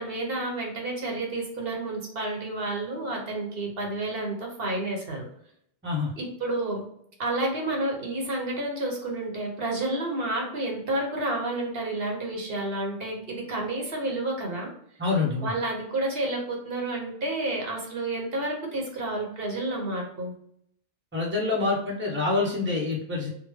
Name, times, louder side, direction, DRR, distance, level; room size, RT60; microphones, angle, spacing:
voice 1, 0.0-5.2 6.2-6.8 7.2-14.7 15.4-20.3, right 2 dB, 70° right, 0 dB, 1.1 m, -30 dB
voice 2, 15.0-15.5 21.1-23.3, left 3 dB, 10° right, -3 dB, 0.8 m, -26 dB
3.6 x 2.3 x 3.1 m, 0.70 s
omnidirectional pair, 1.1 m